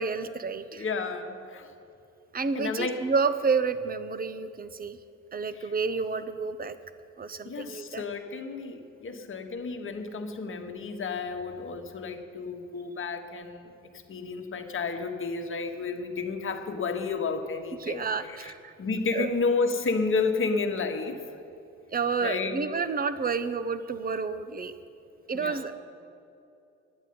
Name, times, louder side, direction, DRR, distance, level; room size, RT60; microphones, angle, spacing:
voice 1, 0.0-0.8 2.3-5.0 5.3-6.8 7.2-8.0 17.8-18.7 19.1-19.3 21.9-24.7 25.3-25.7, right 5 dB, 30° right, 12 dB, 0.7 m, -30 dB
voice 2, 0.7-1.7 2.5-3.0 5.5-5.7 7.4-13.7 14.1-18.5 18.8-21.2 22.2-22.6 25.3-25.7, left 4 dB, 45° left, 5 dB, 1.3 m, -31 dB
10.5 x 8.2 x 9.3 m, 2.7 s
cardioid pair, 90°, 30 cm